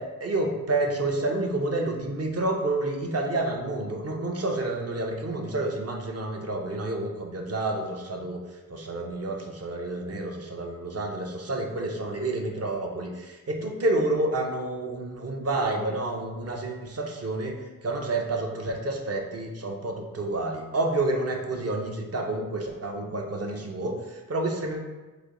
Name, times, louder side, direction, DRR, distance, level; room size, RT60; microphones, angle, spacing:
voice 1, 0.0-8.4 8.7-24.8, right 2 dB, 45° right, 2 dB, 0.7 m, -29 dB
3.3 x 2.2 x 3.7 m, 1.2 s
cardioid pair, 50°, 35 cm